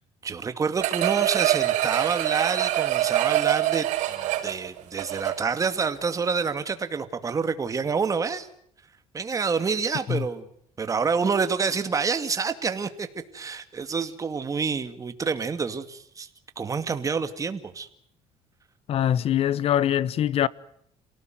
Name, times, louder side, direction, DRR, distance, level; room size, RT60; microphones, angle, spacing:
voice 1, 0.2-8.5 9.1-10.5 10.8-13.1 13.3-16.3 16.6-17.9, right 5 dB, 25° right, 2.3 m, -28 dB
sound 1, 0.8-5.6 6.0-6.1, right 15 dB, 85° right, 5.9 m, -25 dB
voice 2, 18.9-20.5, left 10 dB, 55° left, 1.1 m, -23 dB
28.0 x 18.0 x 9.4 m
cardioid pair, 125°, 12 cm